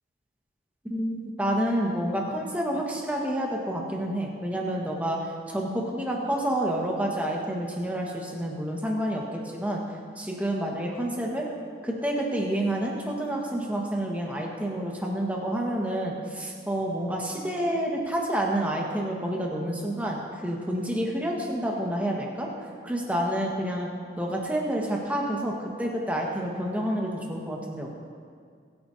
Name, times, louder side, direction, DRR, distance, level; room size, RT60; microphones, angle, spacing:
voice 1, 0.9-9.8 10.2-11.5 11.8-22.5 22.8-23.9 24.2-27.9, right 1 dB, 10° right, -2 dB, 1.4 m, -29 dB
25.0 x 8.8 x 2.8 m, 2.1 s
head